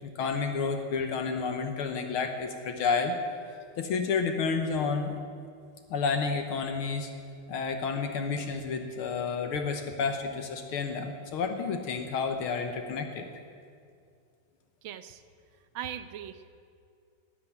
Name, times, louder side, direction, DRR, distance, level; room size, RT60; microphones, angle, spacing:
voice 1, 0.0-3.2 3.8-5.1 5.9-7.1 7.5-13.3, left 5 dB, 75° left, 5 dB, 1.9 m, -30 dB
voice 2, 14.8-15.2 15.7-16.5, right 10 dB, 70° right, 10 dB, 1.4 m, -39 dB
12.5 x 11.5 x 9.4 m, 2.3 s
omnidirectional pair, 2.4 m